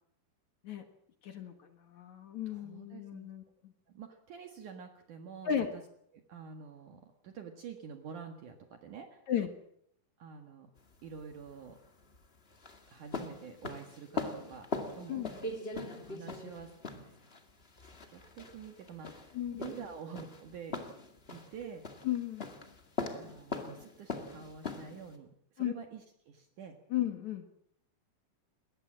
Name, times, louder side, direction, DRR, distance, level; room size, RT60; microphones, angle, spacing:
voice 1, 1.2-3.4 5.5-5.7 9.3-9.5 15.1-15.3 19.3-19.7 22.0-22.5 25.6-25.7 26.9-27.5, left 10 dB, 55° left, 7 dB, 2.5 m, -35 dB
voice 2, 2.5-3.3 3.9-5.8 6.1-9.2 10.2-10.7 11.0-11.8 12.9-14.7 14.9-15.2 15.9-17.2 17.8-20.8 21.3-21.9 23.2-26.8, right 6 dB, 60° right, 5 dB, 2.8 m, -48 dB
sound 1, 10.8-25.1, left 3 dB, 25° left, 1.2 m, -41 dB
21.5 x 18.5 x 7.5 m, 0.70 s
omnidirectional pair, 4.5 m